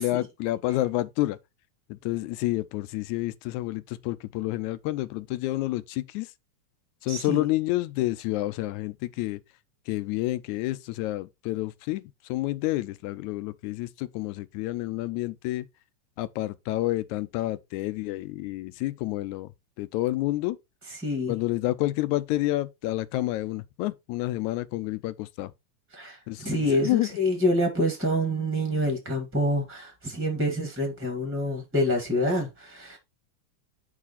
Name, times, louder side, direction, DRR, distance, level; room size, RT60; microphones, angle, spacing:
voice 1, 0.0-1.4 1.9-6.3 7.0-9.4 9.9-15.7 16.2-19.5 19.8-20.6 21.3-25.5 26.3-27.1, left 17 dB, 80° left, 2.0 m, -29 dB
voice 2, 7.1-7.5 21.0-21.4 25.9-33.0, left 1 dB, 10° right, 0.7 m, -27 dB
8.0 x 4.9 x 4.1 m
omnidirectional pair, 3.4 m